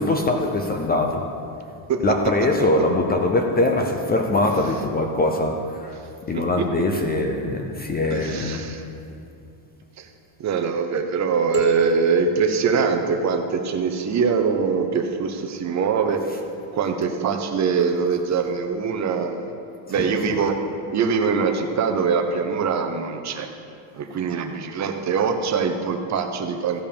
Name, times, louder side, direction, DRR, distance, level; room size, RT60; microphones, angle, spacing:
voice 1, 0.0-1.3 2.0-6.0 6.3-8.7 16.3-16.4 19.9-20.2, left 2 dB, 20° left, 3 dB, 0.5 m, -22 dB
voice 2, 6.3-6.7 8.1-8.8 10.0-10.1 10.4-16.2 16.7-19.5 19.9-20.6 20.9-23.5 23.9-26.8, right 5 dB, 35° right, 6 dB, 0.7 m, -23 dB
sound 1, 11.5-13.9, right 2 dB, 20° right, 2.4 m, -27 dB
15.5 x 5.4 x 6.8 m, 2.5 s
cardioid pair, 170°, 47 cm